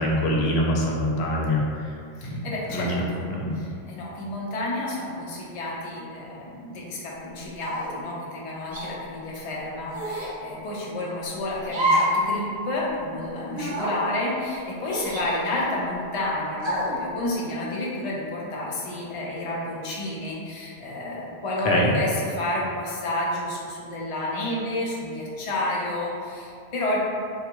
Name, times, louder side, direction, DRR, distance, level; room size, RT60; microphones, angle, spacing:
voice 1, 0.0-1.6 2.3-2.4 2.7-3.0 3.3-3.5 21.6-21.9, left 1 dB, 80° left, -2 dB, 0.8 m, -23 dB
voice 2, 2.2-3.3 3.5-27.0, left 1 dB, 45° left, -4 dB, 0.5 m, -30 dB
sound 1, 7.6-8.0 8.7-8.9 9.9-10.3 11.7-12.2 12.5-12.6 13.5-13.9 14.8-15.8 16.6-17.0, right 1 dB, 35° right, 0.6 m, -27 dB
3.4 x 2.3 x 2.9 m, 2.4 s
omnidirectional pair, 1.1 m